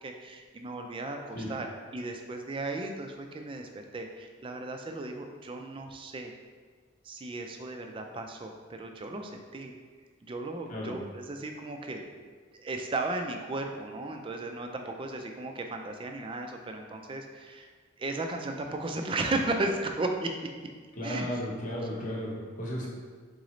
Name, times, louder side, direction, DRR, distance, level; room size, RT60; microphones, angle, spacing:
voice 1, 0.0-1.2 1.5-1.7 1.9-6.3 7.0-9.7 10.2-12.0 12.6-17.7 18.0-20.3 21.0-21.3, right 2 dB, 25° right, 4 dB, 0.3 m, -35 dB
voice 2, 21.0-22.9, left 1 dB, 40° left, -3 dB, 0.9 m, -34 dB
3.8 x 3.8 x 3.1 m, 1.5 s
head